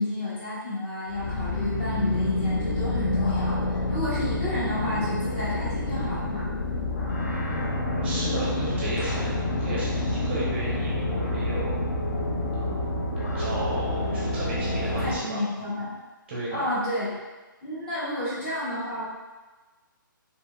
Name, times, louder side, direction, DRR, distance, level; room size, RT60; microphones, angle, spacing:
voice 1, 0.0-6.5 15.0-16.0 16.5-17.2 17.6-19.0, left 1 dB, 25° left, -9 dB, 0.9 m, -30 dB
sound 1, 1.1-15.1, left 2 dB, 50° left, 0.5 m, -28 dB
voice 2, 7.5-11.8 12.5-12.9 13.3-15.4 16.3-16.6, right 1 dB, 30° right, -6 dB, 0.5 m, -34 dB
2.8 x 2.6 x 2.3 m, 1.2 s
hypercardioid pair, 160°, 11 cm